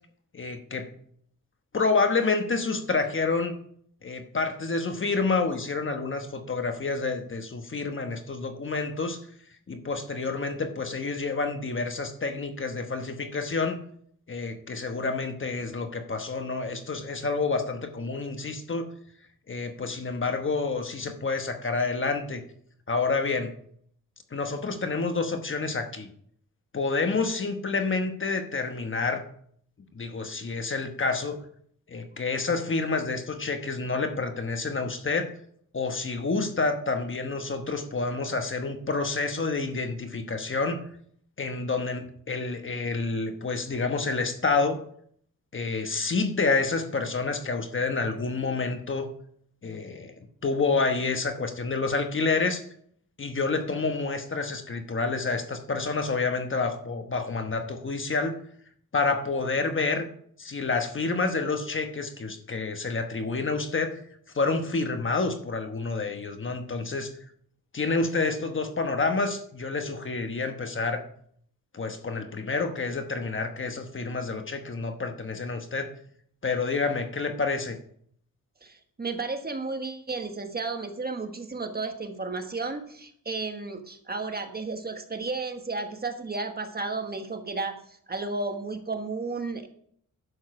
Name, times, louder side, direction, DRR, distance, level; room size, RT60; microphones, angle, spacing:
voice 1, 0.3-0.8 1.7-3.6 4.0-9.2 9.7-13.8 14.3-18.9 19.5-22.4 22.9-23.5 24.3-26.1 26.7-29.2 29.9-31.4 31.9-35.3 35.7-40.8 41.4-44.8 45.5-49.1 49.6-50.1 50.4-52.6 53.2-58.3 58.9-60.1 60.4-64.0 64.3-67.1 67.7-71.0 71.7-75.9 76.4-77.8, left 4 dB, 35° left, 6 dB, 1.1 m, -28 dB
voice 2, 78.6-89.7, right 3 dB, 30° right, 6 dB, 1.3 m, -33 dB
11.0 x 7.2 x 4.9 m, 0.64 s
wide cardioid pair, 115°, 34 cm